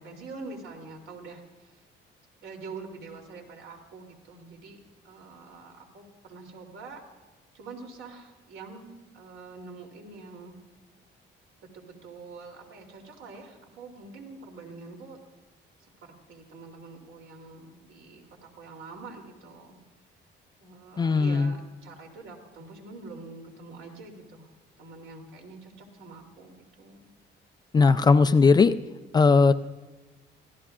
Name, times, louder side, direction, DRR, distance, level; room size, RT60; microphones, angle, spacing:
voice 1, 0.0-1.8 2.4-4.8 5.0-7.0 7.5-10.6 11.6-15.2 15.8-19.8 20.6-24.5 24.8-27.1, right 3 dB, 90° right, 2 dB, 3.1 m, -45 dB
voice 2, 21.0-21.5 27.7-28.7 29.1-29.5, left 4 dB, 20° left, 10 dB, 0.4 m, -18 dB
26.0 x 16.0 x 2.4 m, 1.2 s
cardioid pair, 180°, 20 cm